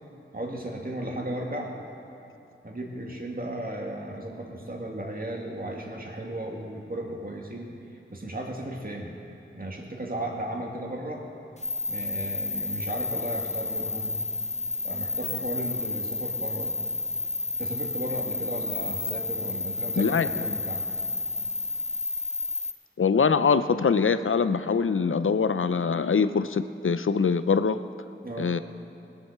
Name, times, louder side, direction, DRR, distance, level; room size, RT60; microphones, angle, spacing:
voice 1, 0.3-1.7 2.6-7.7 8.1-9.2 9.5-11.2 11.9-14.2 14.8-16.8 17.6-20.8 28.2-28.5, right 1 dB, 45° right, -1 dB, 2.1 m, -35 dB
sound 1, 11.6-22.7, left 3 dB, 35° left, 0.8 m, -31 dB
voice 2, 20.0-20.4 23.0-27.8 28.4-28.6, left 5 dB, 75° left, 12 dB, 0.5 m, -23 dB
20.0 x 7.6 x 6.7 m, 2.8 s
wide cardioid pair, 55°, 21 cm